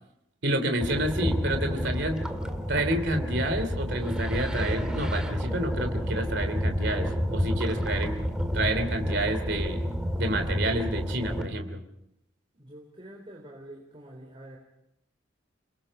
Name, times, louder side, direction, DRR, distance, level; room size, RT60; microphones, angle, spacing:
voice 1, 0.4-2.2 2.7-8.1 8.5-9.8 10.2-11.8, right 1 dB, 60° right, 7 dB, 3.0 m, -29 dB
sound 1, 0.8-11.4, equal, 5° right, 2.1 m, -30 dB
voice 2, 12.5-14.6, right 1 dB, 25° right, 0 dB, 3.5 m, -46 dB
29.0 x 21.0 x 5.4 m, 0.82 s
head